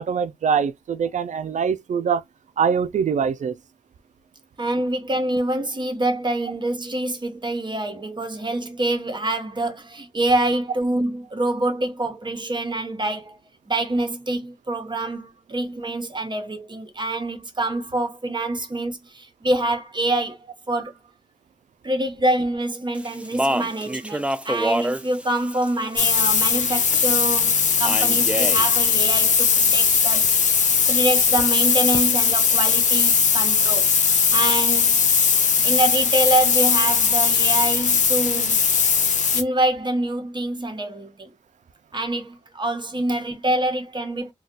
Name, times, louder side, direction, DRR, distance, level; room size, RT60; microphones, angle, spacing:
voice 1, 0.0-2.2 2.6-3.6, right 6 dB, 75° right, 0.4 m, -23 dB
voice 2, 4.6-13.4 13.7-20.4 20.7-21.0 21.8-30.4 30.9-33.9 34.3-35.0 35.6-38.6 39.3-41.3 41.9-44.3, right 1 dB, 40° right, 0.9 m, -25 dB
Speech, 22.9-27.1 27.8-28.7, right 1 dB, 10° right, 0.5 m, -28 dB
sound 1, 26.0-39.4, left 6 dB, 80° left, 0.5 m, -19 dB
2.3 x 2.2 x 3.9 m
cardioid pair, 50°, 13 cm